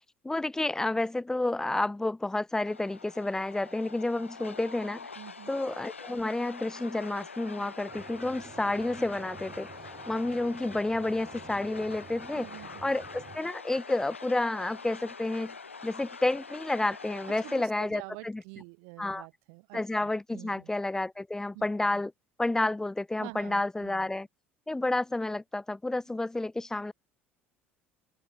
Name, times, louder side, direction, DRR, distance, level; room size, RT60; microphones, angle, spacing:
voice 1, 0.2-5.1 5.5-9.7 10.1-12.5 12.8-15.5 15.8-18.4 19.0-19.2 19.7-22.1 22.4-24.3 24.7-26.9, left 2 dB, 10° left, 0.4 m, -30 dB
sound 1, 2.6-17.6, left 4 dB, 85° left, 2.1 m, -45 dB
voice 2, 5.2-5.5 12.3-12.9 17.4-20.7 21.5-21.7 21.9-22.0 23.2-24.1, right 40 dB or more, 60° right, 1.1 m, -47 dB
sound 2, 7.9-13.4, right 7 dB, 30° right, 1.2 m, -50 dB
open air
figure-of-eight pair, 65°, 7 cm